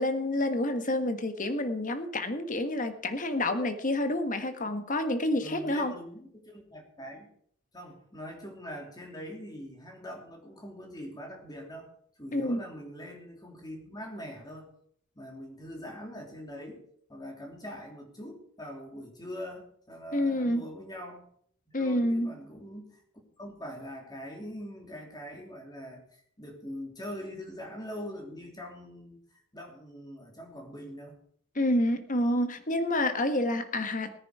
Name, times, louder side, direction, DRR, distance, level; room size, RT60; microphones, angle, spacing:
voice 1, 0.0-5.9 12.3-12.6 20.1-20.6 21.7-22.3 31.5-34.2, left 1 dB, 40° left, 8 dB, 1.4 m, -28 dB
voice 2, 5.4-7.3 7.7-11.9 12.2-14.7 15.1-16.8 17.1-21.3 21.7-23.0 23.4-31.2, equal, 20° left, 2 dB, 3.1 m, -43 dB
18.0 x 9.9 x 4.8 m, 0.63 s
head